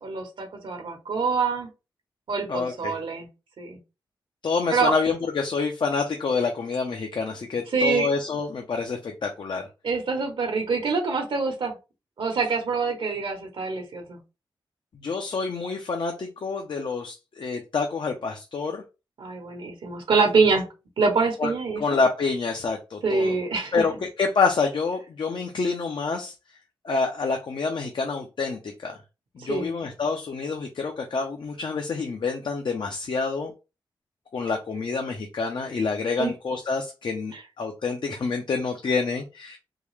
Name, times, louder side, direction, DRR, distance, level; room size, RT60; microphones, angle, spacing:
voice 1, 0.0-1.7 2.3-3.3 3.6-3.8 4.7-4.9 7.7-8.1 9.8-11.7 12.2-14.2 19.2-20.6 21.0-21.8 23.0-23.7 29.5-29.7 36.2-36.3 37.3-37.4, right 4 dB, 75° right, 2 dB, 1.0 m, -25 dB
voice 2, 2.5-3.0 4.4-9.7 15.0-18.8 21.4-21.5 21.8-23.4 23.7-26.3 26.8-29.0 29.4-33.5 34.3-39.6, left 4 dB, 60° left, 3 dB, 0.7 m, -27 dB
3.7 x 2.3 x 3.2 m, 0.28 s
cardioid pair, 65°, 9 cm